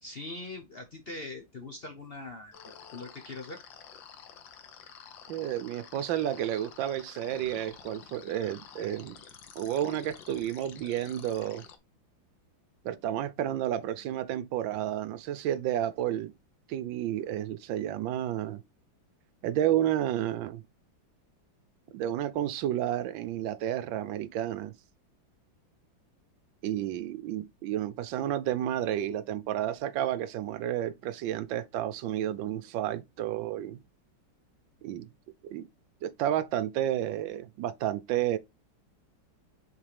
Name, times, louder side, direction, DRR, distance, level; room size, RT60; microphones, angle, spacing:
voice 1, 0.0-2.5 2.9-3.6, left 2 dB, 45° left, 0.8 m, -41 dB
sound 1, 2.5-11.8, left 8 dB, 75° left, 1.6 m, -50 dB
voice 2, 5.3-9.2 9.6-11.7 12.8-16.3 16.7-18.6 19.4-20.6 21.9-24.7 26.6-33.8 34.8-35.1 35.5-35.7 36.0-38.4, right 11 dB, 75° right, 1.3 m, -31 dB
7.0 x 4.4 x 3.3 m
omnidirectional pair, 2.1 m